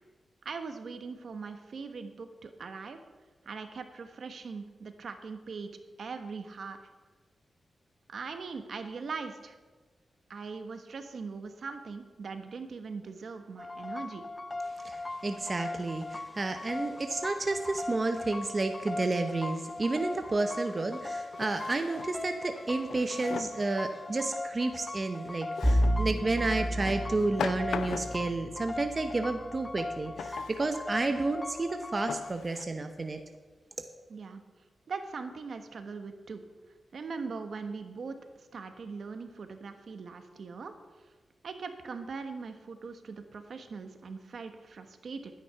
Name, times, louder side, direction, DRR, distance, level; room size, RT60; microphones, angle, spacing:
voice 1, 0.4-3.0 3.4-5.7 6.0-6.8 8.1-9.5 10.3-14.2 34.1-34.4 34.9-36.4 36.9-40.7 41.4-45.3, right 4 dB, 65° right, 7 dB, 1.2 m, -40 dB
sound 1, 13.6-32.3, left 2 dB, 20° left, 0.5 m, -39 dB
voice 2, 14.7-33.2, right 3 dB, 35° right, 7 dB, 0.9 m, -31 dB
Drawer open or close, 20.0-20.1 21.3-22.2 22.9-23.7 25.5-26.0 26.9-28.3 30.2-30.6 31.3-31.4 32.1-32.6, left 7 dB, 90° left, 0.4 m, -39 dB
Bowed string instrument, 25.6-30.7, equal, ahead, 1.7 m, -32 dB
12.0 x 9.9 x 5.8 m, 1.3 s
cardioid pair, 90°, 0 cm